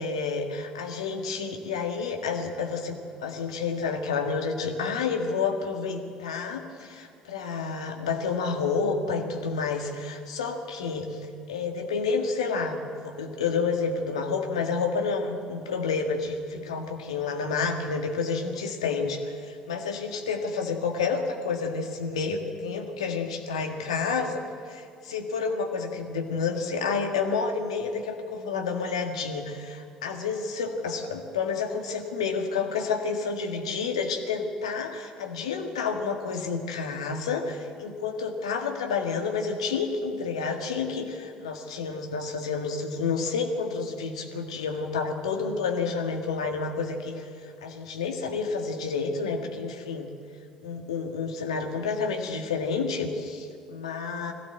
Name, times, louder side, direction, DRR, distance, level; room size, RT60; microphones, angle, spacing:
voice 1, 0.0-11.2 11.5-24.4 24.7-47.3 47.6-50.1 50.6-54.3, left 5 dB, 75° left, 3 dB, 1.8 m, -29 dB
21.5 x 15.5 x 7.8 m, 2.4 s
figure-of-eight pair, 55°, 3 cm